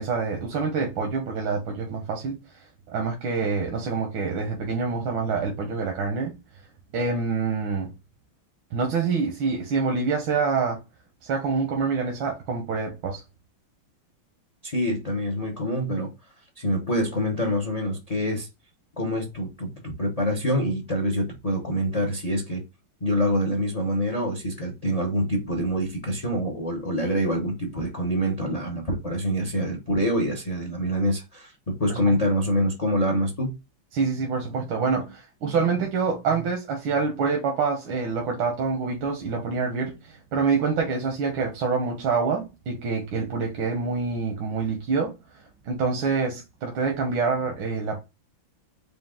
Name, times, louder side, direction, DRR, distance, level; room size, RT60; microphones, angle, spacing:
voice 1, 0.0-2.4 2.9-6.3 6.9-7.9 8.7-10.8 11.2-13.2 31.9-32.2 33.9-45.1 45.6-48.0, right 5 dB, 85° right, 1.7 m, -26 dB
voice 2, 14.6-16.1 16.6-18.5 19.0-22.6 23.0-33.6, equal, 40° left, 0.5 m, -26 dB
5.0 x 2.5 x 3.6 m
omnidirectional pair, 2.1 m